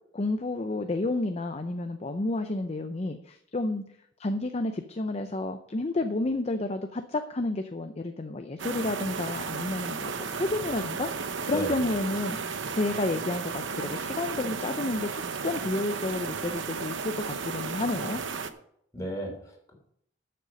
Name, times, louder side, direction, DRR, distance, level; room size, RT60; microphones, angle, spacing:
voice 1, 0.1-3.8 4.2-10.1 10.4-15.1 15.4-18.2, left 2 dB, 35° left, 7 dB, 0.6 m, -30 dB
sound 1, 8.6-18.5, right 5 dB, 75° right, 0.9 m, -34 dB
voice 2, 11.5-11.9 18.9-19.7, right 1 dB, 15° left, 0 dB, 3.3 m, -34 dB
12.0 x 6.8 x 5.2 m, 0.70 s
head